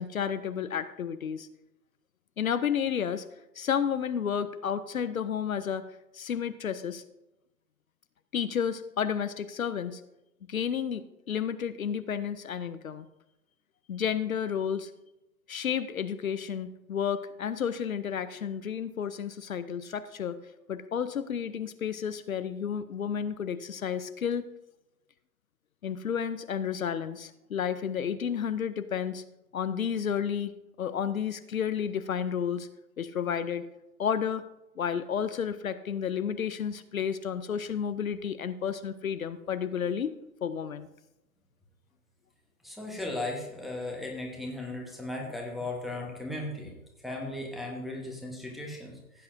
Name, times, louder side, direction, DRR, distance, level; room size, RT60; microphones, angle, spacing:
voice 1, 0.0-1.5 2.4-3.2 3.6-5.9 6.1-7.0 8.3-10.0 10.5-13.1 13.9-14.9 15.5-20.4 20.7-24.5 25.8-29.2 29.5-30.5 30.8-32.7 33.0-33.7 34.0-34.4 34.8-40.9, left 8 dB, 65° left, 12 dB, 0.6 m, -31 dB
voice 2, 42.6-46.7 47.0-49.2, left 2 dB, ahead, -2 dB, 1.1 m, -36 dB
15.0 x 8.6 x 2.6 m, 0.93 s
figure-of-eight pair, 120°, 44 cm